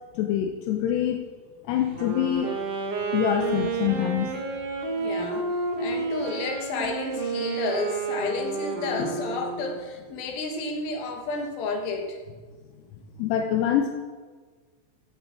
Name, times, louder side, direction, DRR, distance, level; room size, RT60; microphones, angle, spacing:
voice 1, 0.2-1.2 1.7-2.6 3.1-4.3 13.2-13.9, left 10 dB, 80° left, 3 dB, 2.5 m, -25 dB
Wind instrument woodwind instrument, 1.8-9.9, right 3 dB, 50° right, 2.0 m, -30 dB
voice 2, 5.0-12.2, left 3 dB, 60° left, 3 dB, 2.8 m, -31 dB
17.0 x 11.5 x 4.5 m, 1.5 s
omnidirectional pair, 5.8 m